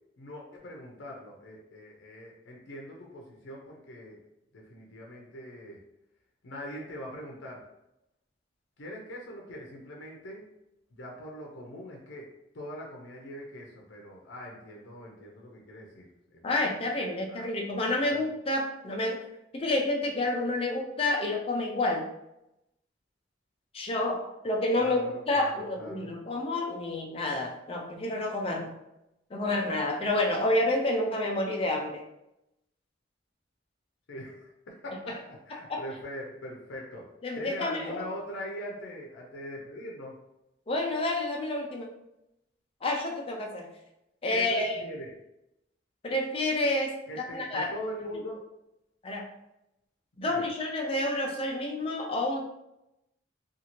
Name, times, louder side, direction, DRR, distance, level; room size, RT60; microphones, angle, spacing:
voice 1, 0.2-4.2 4.5-5.8 6.4-7.6 8.8-10.5 10.9-12.3 12.5-16.4 17.3-17.5 17.9-18.3 24.7-26.1 34.1-37.1 37.4-40.2 40.8-40.9 44.3-45.1 47.1-48.4 50.2-50.4, equal, 85° left, -1 dB, 0.6 m, -42 dB
voice 2, 16.4-19.2 19.5-22.1 23.7-28.7 29.3-32.0 35.7-35.8 37.2-38.0 40.7-41.9 42.8-43.7 44.2-44.8 46.0-47.7 49.0-49.3 50.2-52.4, left 2 dB, 30° left, 1 dB, 0.4 m, -29 dB
2.7 x 2.4 x 2.9 m, 0.86 s
head